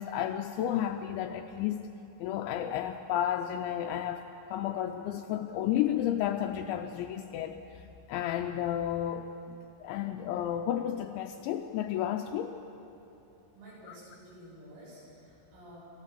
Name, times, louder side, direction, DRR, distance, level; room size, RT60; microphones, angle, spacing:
voice 1, 0.0-1.9 2.2-7.6 8.1-12.6 13.9-14.0, left 10 dB, 85° left, 6 dB, 2.7 m, -32 dB
voice 2, 13.5-15.8, equal, 75° right, -6 dB, 9.5 m, -51 dB
27.5 x 14.0 x 7.5 m, 2.8 s
omnidirectional pair, 5.8 m